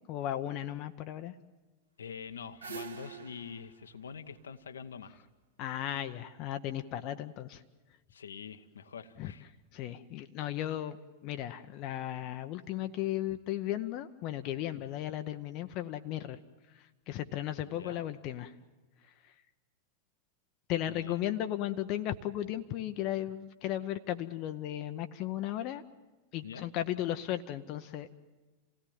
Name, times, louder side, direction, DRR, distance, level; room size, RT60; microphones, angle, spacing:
voice 1, 0.1-1.3 5.6-7.6 9.2-9.3 9.7-11.0 11.2-16.4 16.7-18.5 20.7-25.8 26.3-28.1, left 12 dB, 40° left, 9 dB, 0.8 m, -35 dB
voice 2, 2.0-5.1 8.1-9.5 14.7-14.8 17.7-18.0 20.9-21.2 26.4-26.6, left 6 dB, 70° left, 9 dB, 1.0 m, -45 dB
sound 1, 2.1-5.3, right 6 dB, 70° right, 1.6 m, -47 dB
28.0 x 17.5 x 9.3 m, 1.2 s
figure-of-eight pair, 90°, 0 cm